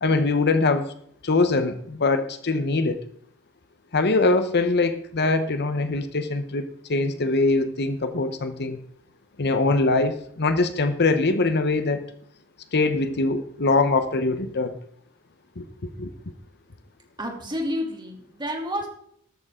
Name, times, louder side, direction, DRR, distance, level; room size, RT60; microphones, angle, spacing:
voice 1, 0.0-0.9 1.2-3.0 3.9-8.8 9.4-12.0 12.7-14.8 15.6-16.1, left 3 dB, 50° left, 10 dB, 1.0 m, -23 dB
voice 2, 17.2-18.9, equal, 20° right, 1 dB, 2.9 m, -30 dB
13.5 x 13.0 x 3.8 m, 0.66 s
head